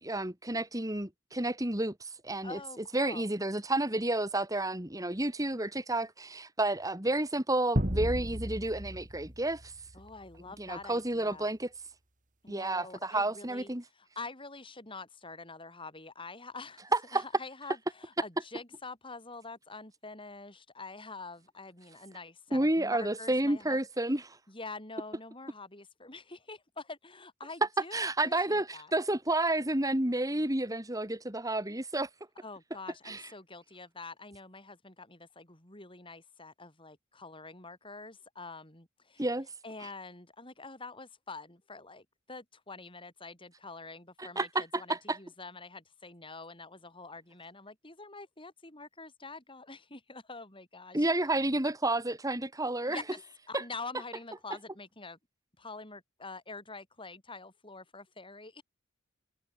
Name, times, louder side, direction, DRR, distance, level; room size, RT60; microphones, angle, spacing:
voice 1, 0.0-2.6 2.9-9.7 10.6-11.7 12.5-13.8 16.9-17.2 22.5-24.4 27.9-32.1 33.1-33.2 39.2-39.5 44.2-45.2 50.9-53.0 53.5-53.6, right 2 dB, 15° right, 2.9 m, -30 dB
voice 2, 2.4-3.3 9.9-11.5 12.4-16.9 17.1-23.8 24.5-28.9 32.4-39.3 39.6-51.1 52.9-53.2 53.5-55.2 55.6-58.6, left 3 dB, 25° left, 6.0 m, -46 dB
sound 1, 7.8-10.3, equal, 40° right, 5.2 m, -34 dB
head